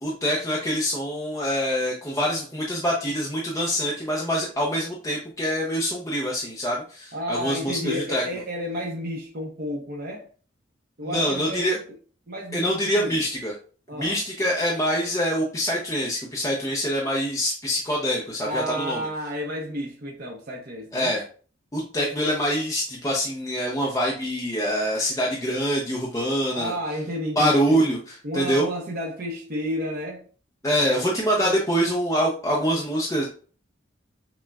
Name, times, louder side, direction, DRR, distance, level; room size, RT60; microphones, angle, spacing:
voice 1, 0.0-8.2 11.0-11.8 12.5-13.5 13.9-19.0 20.9-21.2 21.7-26.7 27.4-28.0 28.3-28.7 30.6-33.2, equal, 15° left, 0.5 m, -25 dB
voice 2, 7.1-10.3 11.0-11.8 12.3-13.3 13.9-14.2 18.4-21.1 26.5-30.3, equal, 50° right, 0.6 m, -32 dB
5.9 x 2.1 x 2.2 m
head